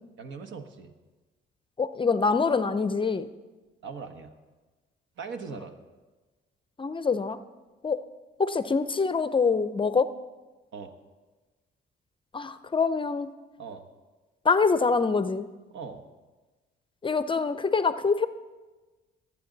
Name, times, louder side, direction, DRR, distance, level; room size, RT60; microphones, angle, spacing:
voice 1, 0.2-0.9 3.8-4.3 5.2-5.7 10.7-10.9 13.6-13.8 15.7-16.0, right 5 dB, 70° right, 7 dB, 1.2 m, -40 dB
voice 2, 1.8-3.3 6.8-7.4 7.8-8.0 8.4-10.1 12.3-13.3 14.5-15.4 17.0-18.3, left 4 dB, 25° left, 13 dB, 0.5 m, -25 dB
19.0 x 8.6 x 3.9 m, 1.2 s
cardioid pair, 90°, 20 cm